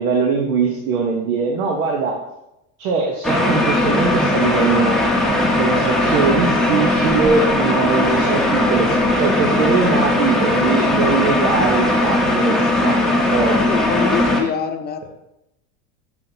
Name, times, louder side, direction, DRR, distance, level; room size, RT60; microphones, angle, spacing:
voice 1, 0.0-2.1 2.8-5.0 5.6-13.6, right 5 dB, 90° right, 1 dB, 1.0 m, -21 dB
sound 1, 3.2-14.4, left 1 dB, ahead, 0.8 m, -18 dB
voice 2, 13.7-15.0, left 7 dB, 25° left, 7 dB, 0.5 m, -25 dB
6.2 x 5.8 x 2.7 m, 0.86 s
supercardioid pair, 130°, 42 cm